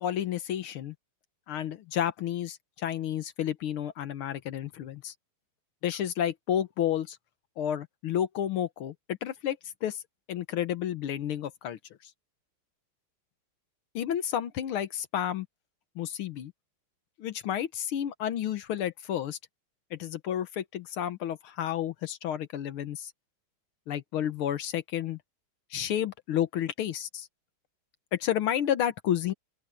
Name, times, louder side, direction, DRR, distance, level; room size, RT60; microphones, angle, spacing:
voice 1, 0.0-1.0 1.5-5.1 5.8-7.2 7.6-10.0 10.3-12.1 14.0-15.5 16.0-16.5 17.2-19.4 19.9-23.1 23.9-25.2 25.7-27.3 28.1-29.3, left 10 dB, 75° left, 1.8 m, -31 dB
open air
omnidirectional pair, 2.4 m